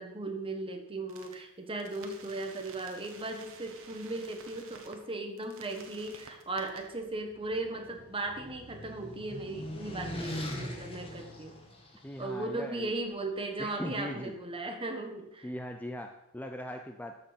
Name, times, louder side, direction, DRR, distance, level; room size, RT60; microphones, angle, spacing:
voice 1, 0.0-11.6 12.2-15.5, right 2 dB, 25° right, 4 dB, 1.5 m, -37 dB
sound 1, 1.1-1.3 1.8-4.9 5.4-6.8, right 5 dB, 65° right, 1.5 m, -51 dB
sound 2, 7.1-12.3, left 1 dB, 25° left, 1.8 m, -41 dB
voice 2, 12.0-12.9 13.6-14.4 15.4-17.2, left 1 dB, 5° left, 5 dB, 0.5 m, -39 dB
13.0 x 6.7 x 5.2 m, 0.85 s
head